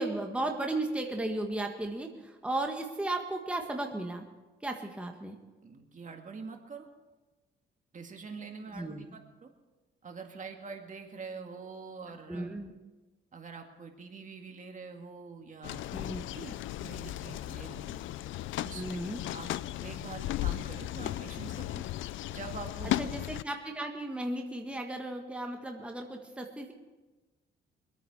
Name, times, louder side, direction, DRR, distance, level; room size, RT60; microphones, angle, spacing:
voice 1, 0.0-4.2 4.6-5.3 8.7-9.2 12.3-12.7 15.9-16.2 18.7-19.2 23.0-26.7, right 2 dB, 5° right, 2 dB, 1.6 m, -35 dB
voice 2, 5.6-6.9 7.9-9.5 10.0-12.5 13.3-15.9 16.3-18.0 18.6-19.0 19.3-19.5 19.8-21.8 22.3-23.0, right 4 dB, 40° right, 4 dB, 2.0 m, -45 dB
sound 1, 15.6-23.4, left 14 dB, 75° left, 0.5 m, -36 dB
24.5 x 9.1 x 4.9 m, 1.2 s
cardioid pair, 90°, 20 cm